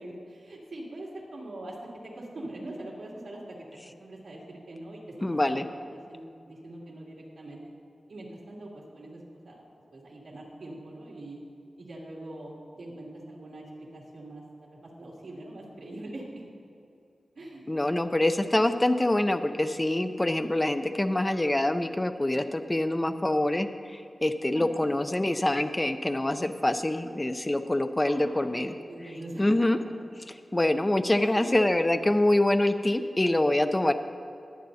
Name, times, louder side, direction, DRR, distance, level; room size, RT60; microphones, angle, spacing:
voice 1, 0.0-1.8 2.1-3.6 4.0-7.6 8.1-9.6 9.9-11.4 11.8-16.4 17.3-17.7 24.5-24.8 28.0-28.6 28.9-29.9 31.1-31.5, right 1 dB, 65° right, -4 dB, 2.8 m, -43 dB
voice 2, 5.2-5.6 17.7-28.7 29.4-29.8 30.5-33.9, left 1 dB, 20° left, 8 dB, 0.6 m, -25 dB
22.0 x 8.9 x 2.8 m, 2.6 s
wide cardioid pair, 115°, 0 cm